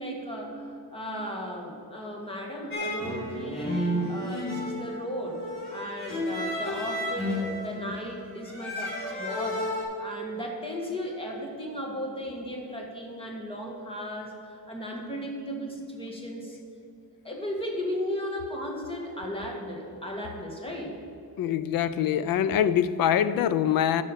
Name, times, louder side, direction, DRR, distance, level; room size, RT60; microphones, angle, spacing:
voice 1, 0.0-9.6 10.0-16.6 17.2-21.0, equal, 15° left, 0 dB, 1.7 m, -36 dB
sound 1, 2.7-9.8, left 1 dB, 35° left, 2.8 m, -32 dB
voice 2, 21.4-24.0, left 9 dB, 65° left, 14 dB, 0.5 m, -24 dB
10.0 x 6.8 x 6.6 m, 2.7 s
wide cardioid pair, 165°, 37 cm